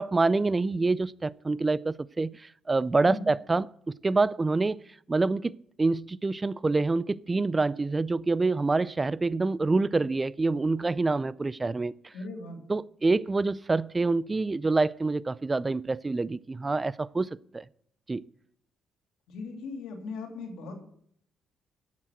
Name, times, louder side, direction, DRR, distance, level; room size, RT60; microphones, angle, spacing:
voice 1, 0.0-3.7 4.0-4.8 5.1-12.1 12.7-17.6 18.1-18.2, right 3 dB, 25° right, 0.4 m, -26 dB
voice 2, 12.1-12.6 19.3-20.7, left 3 dB, 85° left, 2.9 m, -38 dB
9.9 x 7.5 x 9.0 m
cardioid pair, 90°, 0 cm